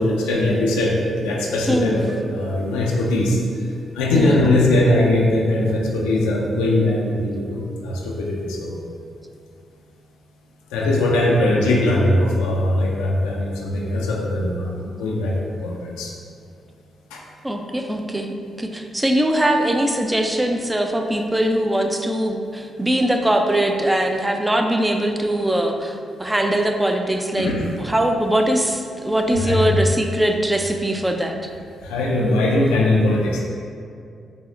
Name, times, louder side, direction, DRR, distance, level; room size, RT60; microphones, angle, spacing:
voice 1, 0.0-3.4 3.9-8.8 10.7-16.1 17.1-17.2 27.4-27.7 28.0-28.1 29.3-29.9 31.8-33.4, left 1 dB, 90° left, -2 dB, 0.4 m, -20 dB
voice 2, 1.7-2.0 4.1-4.4 17.4-31.5, right 1 dB, 15° right, 4 dB, 0.4 m, -21 dB
4.9 x 2.0 x 2.5 m, 2.4 s
hypercardioid pair, 45°, 0 cm